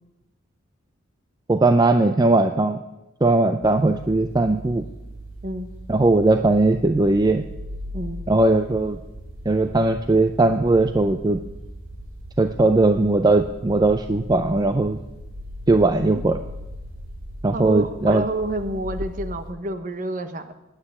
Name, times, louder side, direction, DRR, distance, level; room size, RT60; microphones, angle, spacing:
voice 1, 1.5-2.8 3.2-4.8 5.9-7.4 8.3-9.0 9.5-11.4 12.4-15.0 15.7-16.4 17.4-18.2, right 2 dB, 20° right, 8 dB, 0.4 m, -19 dB
sound 1, 3.6-19.5, equal, 90° right, 3.1 m, -38 dB
voice 2, 17.5-20.5, right 1 dB, 40° right, 9 dB, 0.9 m, -29 dB
9.4 x 8.9 x 9.7 m, 1.0 s
head